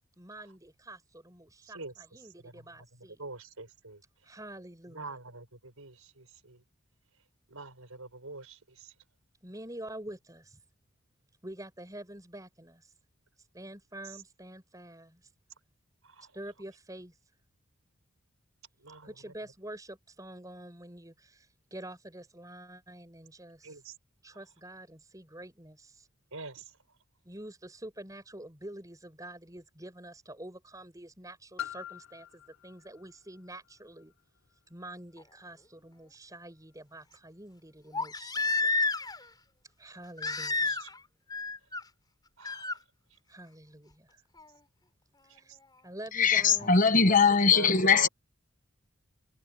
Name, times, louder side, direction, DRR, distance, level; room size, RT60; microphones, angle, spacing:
voice 1, 0.2-3.2 4.2-5.1 9.4-10.6 11.4-12.9 13.4-15.3 16.3-17.2 19.0-23.8 24.2-26.1 27.2-34.1 34.7-38.7 39.8-40.8 43.3-44.2 45.2-45.5 45.8-48.1, right 1 dB, 15° right, 6.8 m, -47 dB
voice 2, 1.6-1.9 2.4-2.7 2.9-4.0 4.9-6.6 7.5-8.9 14.0-14.2 16.0-16.3 18.8-19.3 23.6-23.9 26.3-26.8 39.9-40.0 40.6-40.9 42.4-42.8 45.3-45.6 47.4-48.1, right 3 dB, 85° right, 5.3 m, -44 dB
Piano, 31.6-37.0 37.7-37.8, left 11 dB, 65° left, 5.2 m, -47 dB
Crying sobbing, 35.2-35.3 37.9-39.3 40.2-41.0 41.3-41.8 42.4-42.8 44.4-44.5, left 3 dB, 20° left, 5.9 m, -30 dB
voice 3, 46.1-48.1, left 5 dB, 40° left, 1.3 m, -21 dB
head